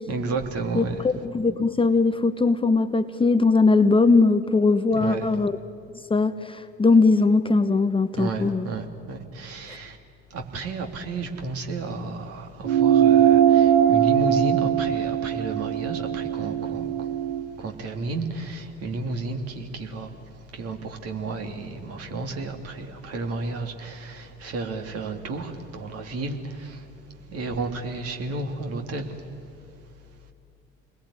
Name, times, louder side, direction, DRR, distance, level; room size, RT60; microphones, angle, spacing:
voice 1, 0.1-1.0 4.9-5.3 8.2-10.0 10.3-17.1 17.6-29.3, right 3 dB, 50° right, 4 dB, 3.1 m, -32 dB
voice 2, 0.7-5.6 6.1-8.7 9.7-9.8, left 3 dB, 15° left, 10 dB, 1.0 m, -20 dB
sound 1, 12.6-17.5, right 10 dB, 65° right, 2.2 m, -20 dB
28.5 x 21.0 x 10.0 m, 2.5 s
figure-of-eight pair, 65°, 31 cm